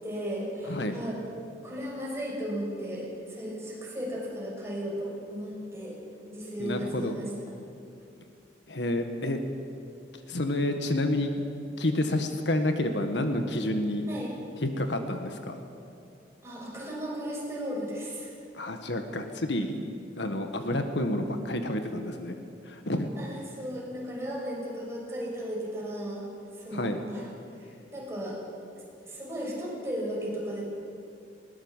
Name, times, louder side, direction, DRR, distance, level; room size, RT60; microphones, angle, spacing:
voice 1, 0.0-1.2 1.6-6.0 6.3-7.3 14.1-14.3 16.4-18.3 23.2-26.2 26.6-27.3 27.6-28.4 29.0-30.6, equal, 15° right, -4 dB, 6.3 m, -35 dB
voice 2, 0.6-1.0 6.6-7.1 8.7-9.4 10.3-11.3 11.8-14.1 14.6-15.6 18.5-19.9 20.2-22.4 22.6-23.1 26.7-27.0, left 1 dB, 70° left, 6 dB, 1.6 m, -29 dB
20.5 x 18.5 x 7.4 m, 2.5 s
head